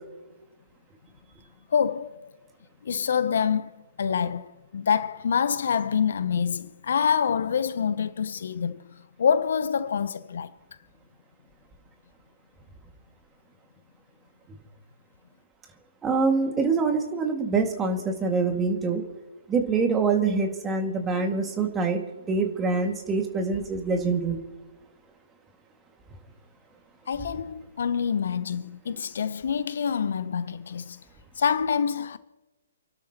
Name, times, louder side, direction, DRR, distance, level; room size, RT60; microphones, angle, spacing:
voice 1, 1.7-2.3 2.8-3.7 4.0-8.8 9.2-10.5 27.1-31.0 31.4-32.2, left 7 dB, 60° left, 0.7 m, -26 dB
voice 2, 16.0-19.0 19.5-22.0 22.3-24.4, right 4 dB, 15° right, 2.0 m, -25 dB
29.0 x 12.0 x 3.0 m
figure-of-eight pair, 130°, 0 cm